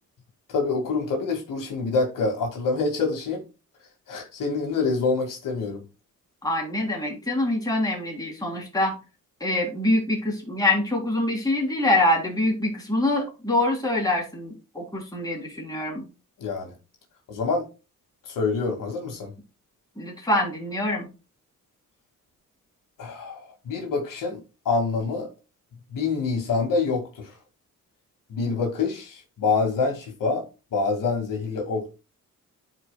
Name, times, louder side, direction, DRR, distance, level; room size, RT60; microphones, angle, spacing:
voice 1, 0.5-3.4 4.1-5.8 16.4-16.7 17.3-17.7 18.3-19.3 23.0-24.4 24.7-25.3 25.9-27.3 28.3-30.4 30.7-31.9, left 4 dB, 75° left, 2.1 m, -26 dB
voice 2, 6.4-9.0 9.4-16.0 20.0-21.1, left 1 dB, 10° left, 3.2 m, -25 dB
12.5 x 4.7 x 2.2 m
cardioid pair, 100°, 32 cm